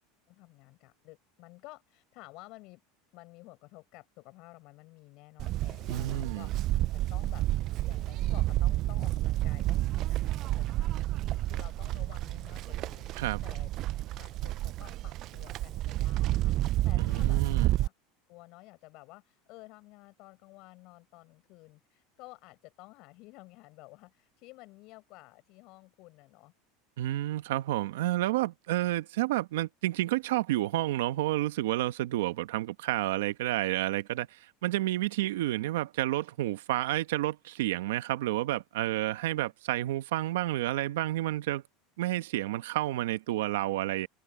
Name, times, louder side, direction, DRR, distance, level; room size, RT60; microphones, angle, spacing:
voice 1, 0.3-2.8 3.1-6.5 6.9-7.5 7.8-13.1 13.4-13.7 14.2-17.4 17.7-17.9 18.3-26.5, left 23 dB, 55° left, 7.8 m, -52 dB
Livestock farm animals working animals, 5.4-17.9, right 15 dB, 45° right, 0.3 m, -30 dB
voice 2, 5.9-6.5 13.2-13.4 17.0-17.7 27.0-41.6 42.0-44.1, right 15 dB, 85° right, 1.4 m, -30 dB
supercardioid pair, 125°, 0 cm